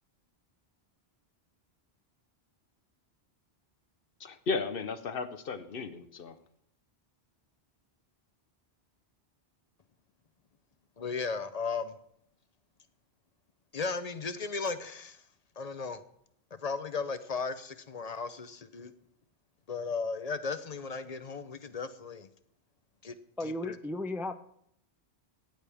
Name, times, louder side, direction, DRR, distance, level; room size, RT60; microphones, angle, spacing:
voice 1, 4.2-6.4, left 4 dB, 60° left, 0.9 m, -35 dB
voice 2, 11.0-12.0 13.7-15.3 15.6-16.0 16.5-18.9 19.7-22.3 23.0-23.8, left 4 dB, 45° left, 0.6 m, -36 dB
voice 3, 23.4-24.3, left 1 dB, 5° right, 0.4 m, -34 dB
17.0 x 10.5 x 3.4 m
omnidirectional pair, 1.1 m